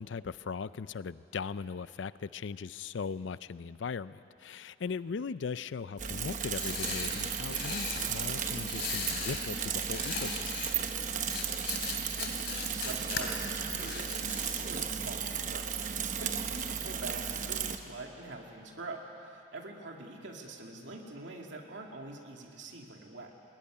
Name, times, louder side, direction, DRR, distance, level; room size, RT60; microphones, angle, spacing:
voice 1, 0.0-10.7, left 5 dB, 80° left, 16 dB, 0.4 m, -39 dB
Bicycle / Mechanisms, 6.0-17.8, right 7 dB, 40° right, 1.0 m, -35 dB
sound 1, 6.3-8.0 8.6-9.5 9.8-10.7 11.2-13.2 13.6-14.7, left 6 dB, 60° left, 3.1 m, -38 dB
voice 2, 12.1-23.3, right 2 dB, 75° right, 1 dB, 2.3 m, -45 dB
20.5 x 19.5 x 10.0 m, 2.7 s
head